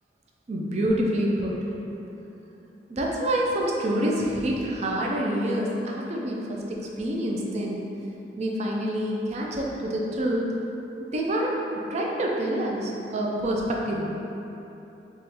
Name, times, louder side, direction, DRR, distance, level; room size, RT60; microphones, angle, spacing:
voice 1, 0.5-1.6 2.9-7.8 8.4-10.5 11.1-14.1, right 1 dB, 40° right, -2 dB, 0.4 m, -27 dB
3.5 x 3.0 x 3.0 m, 3.0 s
head